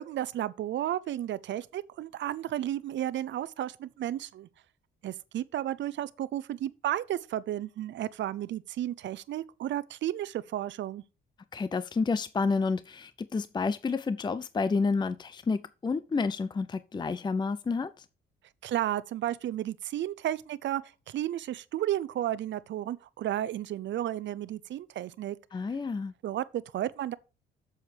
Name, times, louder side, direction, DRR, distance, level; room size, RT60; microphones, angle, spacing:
voice 1, 0.0-4.5 5.0-11.0 18.6-20.8 21.1-25.4 26.2-27.1, right 12 dB, 70° right, 0.7 m, -33 dB
voice 2, 11.5-18.0 25.5-26.1, left 4 dB, 20° left, 0.5 m, -30 dB
8.0 x 7.1 x 4.6 m
cardioid pair, 90°, 20 cm